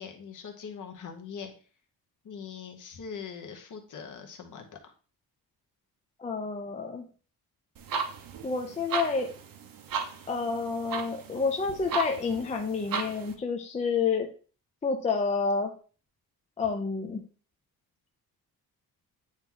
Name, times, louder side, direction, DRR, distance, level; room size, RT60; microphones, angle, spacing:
voice 1, 0.0-1.5 2.2-4.9, left 6 dB, 50° left, 4 dB, 1.1 m, -42 dB
voice 2, 6.2-7.0 8.4-9.3 10.3-14.3 14.8-15.7 16.6-17.2, left 4 dB, 20° left, 3 dB, 0.5 m, -29 dB
sound 1, 7.8-13.3, right 6 dB, 60° right, 0.8 m, -36 dB
8.8 x 3.0 x 3.8 m, 0.39 s
wide cardioid pair, 165°, 38 cm